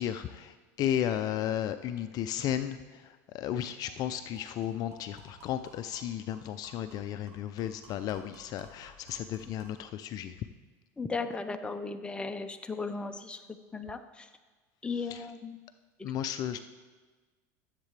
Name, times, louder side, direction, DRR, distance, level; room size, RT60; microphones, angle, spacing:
voice 1, 0.0-10.5 15.0-15.3 16.0-16.6, left 10 dB, 50° left, 10 dB, 0.4 m, -34 dB
sound 1, 2.9-3.0 3.3-3.4 3.8-9.8, right 1 dB, 45° right, 3.4 m, -57 dB
voice 2, 11.0-13.4 13.7-14.3 14.8-15.6, left 4 dB, 10° left, 7 dB, 0.7 m, -36 dB
13.5 x 7.5 x 3.3 m, 1.3 s
supercardioid pair, 100°, 8 cm